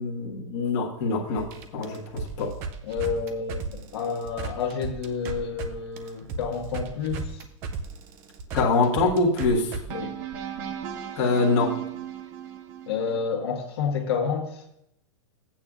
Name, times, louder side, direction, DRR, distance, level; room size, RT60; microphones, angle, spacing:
voice 1, 0.0-1.5 1.7-2.5 8.5-9.7 11.2-11.7, left 3 dB, 30° left, -4 dB, 1.4 m, -24 dB
sound 1, 1.3-5.7 6.0-13.2, right 5 dB, 15° right, 0.3 m, -35 dB
voice 2, 2.8-3.6 3.9-7.4 9.9-10.1 12.9-14.6, left 6 dB, 55° left, 1 dB, 1.5 m, -29 dB
14.0 x 8.7 x 2.5 m, 0.79 s
supercardioid pair, 180°, 16 cm